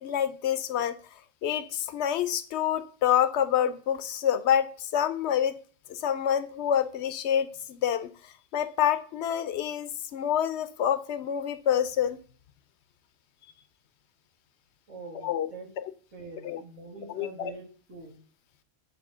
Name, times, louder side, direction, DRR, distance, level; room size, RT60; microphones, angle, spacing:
voice 1, 0.0-1.0 1.4-5.5 5.9-12.2 15.2-15.5 16.4-16.6 17.2-17.5, left 9 dB, 65° left, 13 dB, 0.8 m, -27 dB
voice 2, 14.9-15.7 16.1-18.2, right 3 dB, 90° right, -6 dB, 2.3 m, -44 dB
7.8 x 3.0 x 6.0 m, 0.43 s
omnidirectional pair, 1.3 m